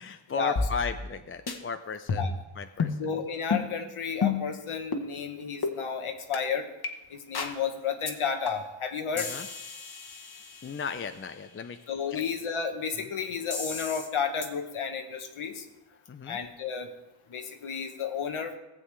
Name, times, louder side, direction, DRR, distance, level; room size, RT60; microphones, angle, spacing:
voice 1, 0.0-3.1 9.2-9.5 10.6-11.8 12.1-12.2 16.1-16.4, left 5 dB, 30° left, 9 dB, 0.4 m, -35 dB
sound 1, 0.6-1.2 1.5-1.6 2.1-2.4 2.8-3.0 3.5-3.7 4.2-4.5 4.9-5.1 5.6-5.8 6.3-6.4 6.8-6.9 7.3-7.6 8.1-8.2 8.5-8.8 9.2-11.0 13.5-14.1 14.4-14.5, left 5 dB, 50° left, 1.1 m, -31 dB
voice 2, 3.0-6.7 7.1-9.3 11.9-15.6 16.3-16.9 17.3-18.6, left 6 dB, 85° left, 5 dB, 1.1 m, -32 dB
15.5 x 7.8 x 3.2 m, 1.0 s
wide cardioid pair, 90°, 48 cm